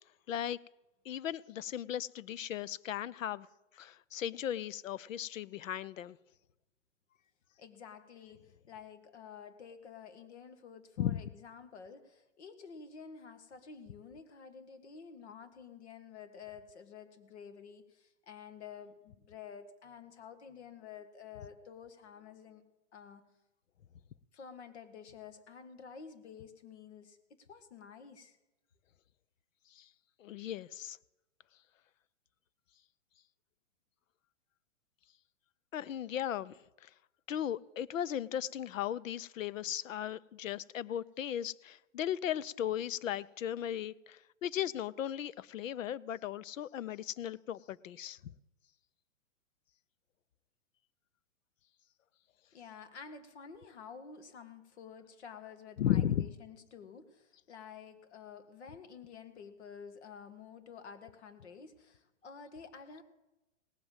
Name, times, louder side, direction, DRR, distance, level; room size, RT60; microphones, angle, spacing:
voice 1, 0.3-0.6 1.1-3.5 3.7-6.2 11.0-11.2 29.7-29.9 30.2-31.0 35.7-36.5 36.8-36.9 37.3-48.3 55.8-56.3, left 10 dB, 90° left, 21 dB, 0.7 m, -36 dB
voice 2, 7.6-8.4 8.7-22.6 22.9-23.2 24.3-27.2 27.5-28.4 52.5-63.0, left 6 dB, 60° left, 10 dB, 1.9 m, -50 dB
18.0 x 7.9 x 7.3 m, 0.99 s
hypercardioid pair, 175°, 38 cm